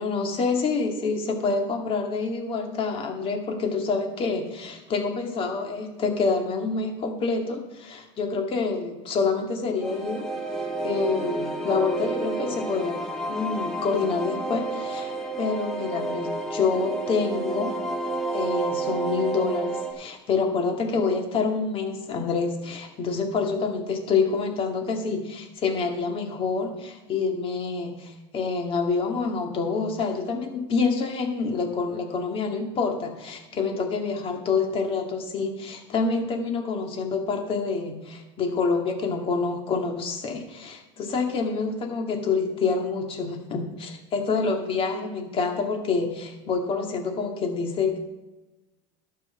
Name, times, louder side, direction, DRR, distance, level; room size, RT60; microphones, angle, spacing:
voice 1, 0.0-10.2 10.6-13.0 13.3-17.7 18.3-48.0, left 4 dB, 35° left, 3 dB, 2.1 m, -27 dB
sound 1, 9.8-19.9, right 2 dB, 5° left, 2.2 m, -30 dB
12.0 x 5.8 x 7.1 m, 1.1 s
supercardioid pair, 130°, 16 cm